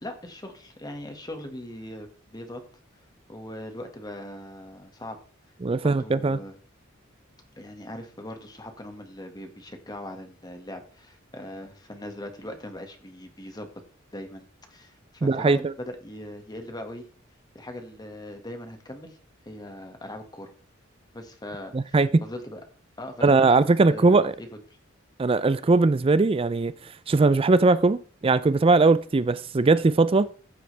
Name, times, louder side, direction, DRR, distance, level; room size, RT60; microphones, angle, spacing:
voice 1, 0.0-2.6 3.3-5.2 5.8-6.5 7.6-13.7 14.1-17.1 17.6-19.2 19.5-20.5 21.1-22.6 23.0-24.5, left 1 dB, 20° left, 1.8 m, -40 dB
voice 2, 5.6-6.4 15.2-15.7 21.7-22.2 23.2-24.3 25.2-26.7 27.1-30.3, right 3 dB, 25° right, 0.4 m, -20 dB
14.5 x 7.7 x 3.4 m
head